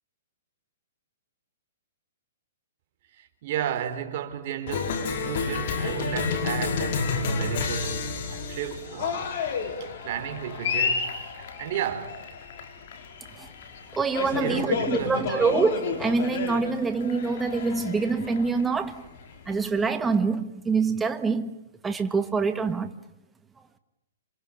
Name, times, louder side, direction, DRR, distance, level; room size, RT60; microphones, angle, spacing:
voice 1, 3.1-9.4 9.8-12.2 14.3-15.5, right 10 dB, 50° right, 4.1 m, -33 dB
Cheering, 4.7-19.8, left 5 dB, 55° left, 5.0 m, -31 dB
voice 2, 13.9-19.1 19.5-21.6 21.8-22.9, right 4 dB, 10° right, 1.5 m, -25 dB
28.0 x 27.0 x 7.3 m
hypercardioid pair, 140°, 0 cm